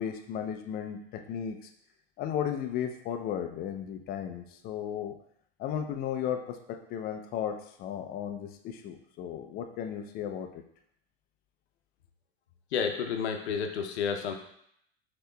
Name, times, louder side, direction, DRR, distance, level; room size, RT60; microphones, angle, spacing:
voice 1, 0.0-1.7 2.2-5.1 5.6-10.6, left 9 dB, 30° left, 7 dB, 0.3 m, -35 dB
voice 2, 12.7-14.3, left 6 dB, 90° left, 4 dB, 0.6 m, -30 dB
5.3 x 2.9 x 2.2 m, 0.71 s
hypercardioid pair, 110°, 32 cm